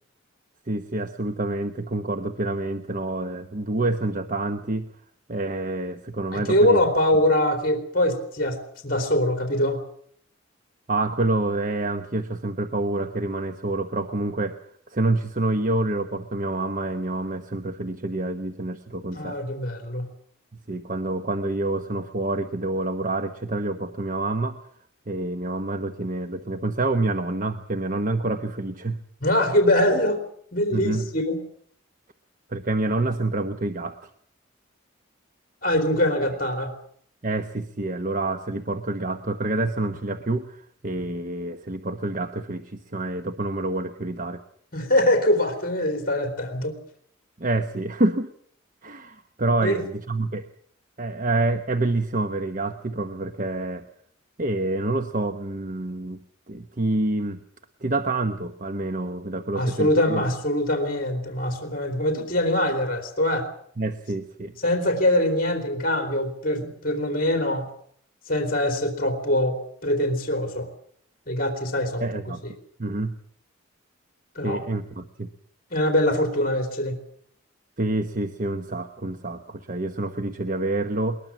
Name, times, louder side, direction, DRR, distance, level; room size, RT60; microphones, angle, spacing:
voice 1, 0.7-4.9 5.3-6.8 10.9-14.5 14.9-19.4 20.7-24.6 25.1-29.0 30.7-31.1 32.5-34.1 37.2-44.4 47.4-48.3 48.8-50.5 51.0-53.8 54.4-56.2 56.5-57.4 57.8-60.2 63.8-64.6 72.0-73.1 74.4-75.3 77.8-81.2, right 2 dB, 40° right, 8 dB, 1.0 m, -27 dB
voice 2, 6.3-9.8 19.1-20.1 29.2-30.2 30.5-31.4 35.6-36.7 44.7-46.7 49.6-49.8 59.5-63.5 64.6-67.7 68.3-70.7 71.3-72.1 74.4-74.6 75.7-77.0, left 1 dB, 45° left, 5 dB, 3.6 m, -23 dB
21.5 x 20.5 x 7.4 m, 0.62 s
head